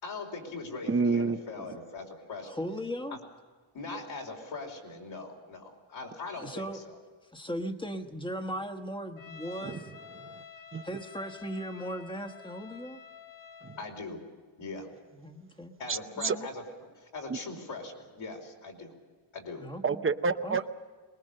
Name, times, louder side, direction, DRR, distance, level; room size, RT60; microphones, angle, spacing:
voice 1, 0.0-2.6 3.7-6.9 13.8-14.2 14.6-14.9 15.8-16.6 17.0-18.9 19.3-19.6, left 3 dB, 70° left, 0 dB, 4.6 m, -41 dB
voice 2, 0.9-1.4 9.6-9.8 10.7-10.8 15.9-16.0 16.2-16.3 19.8-20.7, right 4 dB, 25° right, 10 dB, 0.8 m, -27 dB
voice 3, 2.5-3.2 6.4-6.8 7.3-9.9 10.8-13.0 15.2-15.7 16.2-16.5 19.6-20.0 20.4-20.6, equal, 10° left, 6 dB, 1.3 m, -37 dB
Trumpet, 9.2-13.9, left 7 dB, 45° left, 1.4 m, -49 dB
23.5 x 21.0 x 6.6 m, 1.5 s
wide cardioid pair, 150°, 48 cm